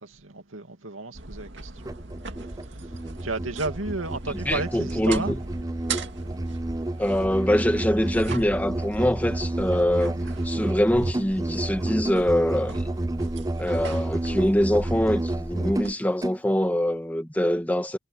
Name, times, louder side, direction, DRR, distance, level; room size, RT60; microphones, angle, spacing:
voice 1, 0.0-2.0 2.7-2.9 3.2-5.3, right 3 dB, 80° right, 2.5 m, -33 dB
sound 1, 1.1-15.9, right 3 dB, 60° right, 2.2 m, -39 dB
Musical instrument, 1.8-16.4, right 1 dB, 15° right, 0.4 m, -30 dB
voice 2, 4.5-5.4 7.0-10.2 10.4-12.9 13.6-18.0, equal, 10° left, 1.7 m, -24 dB
head